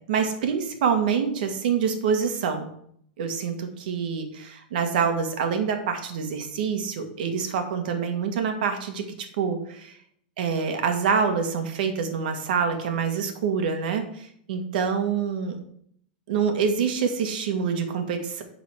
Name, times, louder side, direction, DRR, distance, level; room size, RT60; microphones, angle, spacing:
voice 1, 0.1-2.7 3.2-9.0 9.4-10.0 10.4-15.6 16.3-18.4, right 6 dB, 65° right, 6 dB, 1.6 m, -26 dB
10.5 x 4.0 x 6.1 m, 0.67 s
supercardioid pair, 155°, 5 cm